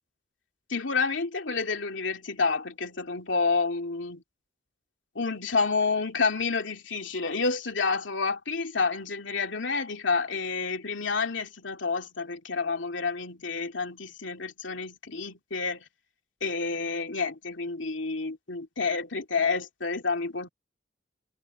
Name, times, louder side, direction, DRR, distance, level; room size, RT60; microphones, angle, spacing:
voice 1, 0.7-4.2 5.1-15.8 16.4-20.5, left 4 dB, 85° left, 2.7 m, -29 dB
head